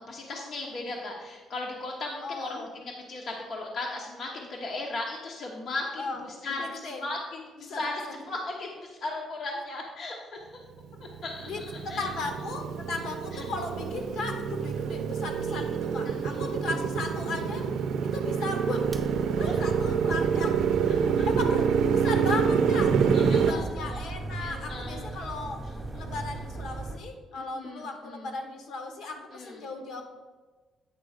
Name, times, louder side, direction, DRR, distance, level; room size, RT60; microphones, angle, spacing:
voice 1, 0.0-10.5 11.2-12.1 13.3-13.5 15.5-15.6 16.1-16.6 19.4-19.6 21.2-21.3 23.1-24.0 24.4-25.2 25.9-26.0 27.4-28.3 29.3-29.6, left 2 dB, 45° left, -1 dB, 0.9 m, -37 dB
voice 2, 2.2-2.7 6.0-6.2 6.5-7.1 7.7-8.2 11.5-17.6 18.1-18.8 19.4-20.5 21.2-21.7 21.9-22.9 23.3-25.6 26.0-30.0, left 3 dB, 65° left, 4 dB, 1.2 m, -36 dB
Motorcycle, 10.9-23.5, right 6 dB, 70° right, 0.6 m, -27 dB
sound 1, 18.8-27.0, right 2 dB, 15° right, 0.7 m, -37 dB
9.0 x 3.8 x 6.4 m, 1.4 s
cardioid pair, 170°, 0 cm